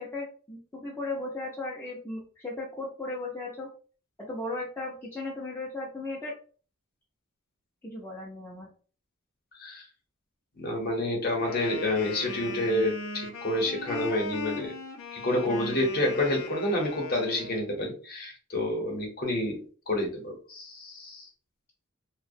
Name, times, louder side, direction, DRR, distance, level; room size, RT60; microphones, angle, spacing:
voice 1, 0.0-3.7 4.2-6.4 7.8-8.7, left 2 dB, 10° left, -4 dB, 0.4 m, -36 dB
voice 2, 10.6-14.7 15.1-21.3, left 1 dB, 45° left, 1 dB, 0.7 m, -29 dB
Wind instrument woodwind instrument, 11.4-17.7, left 3 dB, 70° left, 0.5 m, -38 dB
2.5 x 2.0 x 2.5 m, 0.39 s
head